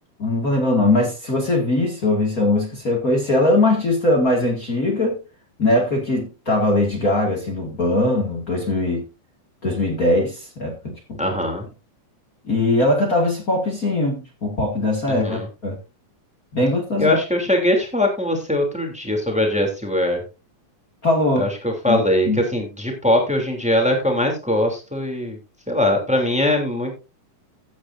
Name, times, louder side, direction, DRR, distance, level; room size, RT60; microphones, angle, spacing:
voice 1, 0.2-5.2 5.6-9.0 9.6-11.2 12.4-15.8 16.5-17.1 21.0-21.5 21.9-22.4, left 2 dB, 30° left, 0 dB, 2.2 m, -20 dB
voice 2, 11.2-11.6 15.2-15.5 17.0-20.2 21.4-25.4 25.7-26.9, left 1 dB, ahead, 2 dB, 2.5 m, -21 dB
15.0 x 8.9 x 2.6 m, 0.30 s
omnidirectional pair, 3.6 m